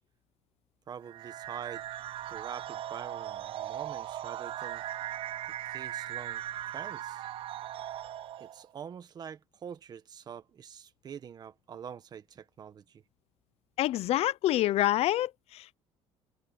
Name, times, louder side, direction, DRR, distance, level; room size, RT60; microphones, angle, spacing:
voice 1, 0.9-1.8 2.3-4.8 5.6-7.2 8.4-13.0, right 8 dB, 35° right, 1.3 m, -45 dB
sound 1, 1.1-8.7, right 12 dB, 50° right, 0.6 m, -39 dB
voice 2, 13.8-15.7, left 14 dB, 55° left, 0.5 m, -27 dB
cardioid pair, 155°, 12 cm